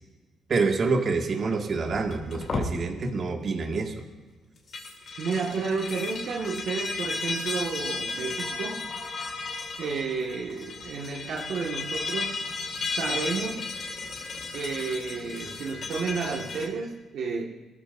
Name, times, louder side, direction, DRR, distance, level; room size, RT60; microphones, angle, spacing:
voice 1, 0.5-3.9, right 4 dB, 50° right, 2 dB, 2.0 m, -27 dB
sound 1, 1.9-2.7 4.6-16.7, left 3 dB, 50° left, 3.0 m, -34 dB
voice 2, 5.2-8.8 9.8-12.4 13.0-13.7 14.5-17.4, right 5 dB, 70° right, -1 dB, 1.8 m, -31 dB
24.5 x 14.0 x 2.7 m, 1.3 s
cardioid pair, 90°, 0 cm